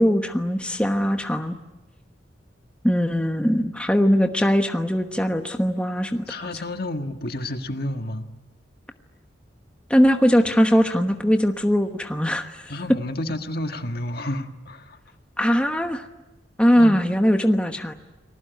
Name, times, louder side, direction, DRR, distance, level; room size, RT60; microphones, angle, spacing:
voice 1, 0.0-1.6 2.8-6.2 9.9-12.7 15.4-16.1 16.6-17.9, equal, 5° left, 5 dB, 1.1 m, -20 dB
voice 2, 6.3-8.3 12.7-15.0 16.8-17.0, left 1 dB, 55° left, 6 dB, 1.7 m, -30 dB
30.0 x 20.0 x 9.5 m, 1.0 s
head